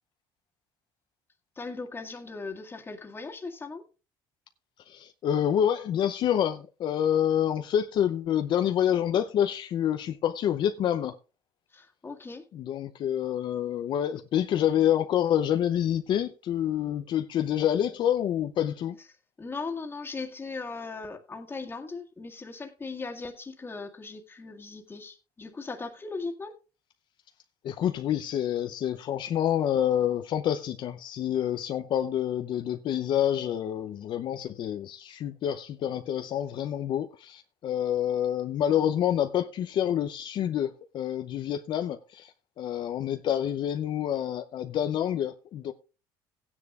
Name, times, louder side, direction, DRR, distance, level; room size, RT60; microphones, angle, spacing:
voice 1, 1.6-3.8 11.7-12.4 19.4-26.5, left 4 dB, 25° left, 1.8 m, -38 dB
voice 2, 4.9-11.2 12.5-19.0 27.6-45.7, left 10 dB, 55° left, 0.6 m, -27 dB
16.0 x 9.7 x 2.4 m
cardioid pair, 95°, 9 cm